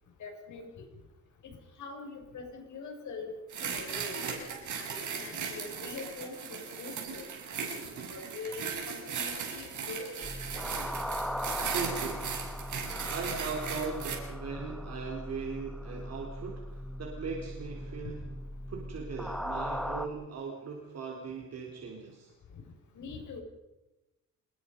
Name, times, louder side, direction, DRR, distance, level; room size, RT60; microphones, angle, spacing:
voice 1, 0.2-0.9 1.4-3.3 3.6-4.3 4.8-7.3 7.7-10.3 22.9-23.4, left 4 dB, 75° left, 2 dB, 6.9 m, -43 dB
sound 1, 3.5-14.2, right 6 dB, 85° right, 6.7 m, -37 dB
sound 2, 10.2-20.1, equal, ahead, 1.7 m, -38 dB
voice 2, 11.6-12.3 13.0-18.2 18.7-22.3, right 5 dB, 60° right, -1 dB, 4.3 m, -39 dB
28.0 x 21.5 x 5.5 m, 1.0 s
wide cardioid pair, 150°, 29 cm